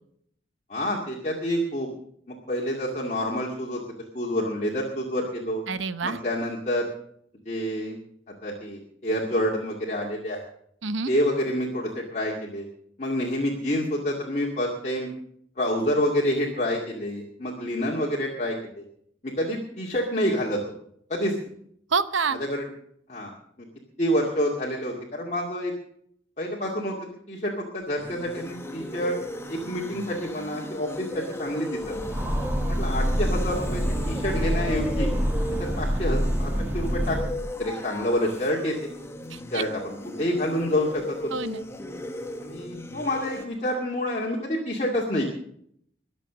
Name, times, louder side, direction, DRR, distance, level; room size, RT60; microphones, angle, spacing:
voice 1, 0.7-1.9 2.5-3.8 4.1-5.6 6.0-6.9 7.5-8.0 8.4-10.4 11.1-12.7 13.0-15.1 15.6-18.8 19.2-20.6 21.1-21.4 22.4-22.6 23.1-23.3 24.0-25.7 26.4-27.0 27.3-29.2 29.5-31.9 32.7-33.8 34.1-35.1 35.6-37.3 37.6-38.7 39.5-39.9 40.2-41.2 42.4-45.3, equal, 35° left, -2 dB, 2.3 m, -28 dB
voice 2, 5.7-6.2 10.8-11.1 21.9-22.4 39.3-39.6 41.3-41.6, right 5 dB, 90° right, 13 dB, 0.9 m, -27 dB
sound 1, 27.8-43.5, left 1 dB, 15° left, 1.1 m, -37 dB
Train, 31.8-37.5, equal, 10° right, 1.6 m, -26 dB
22.0 x 7.7 x 6.2 m, 0.67 s
head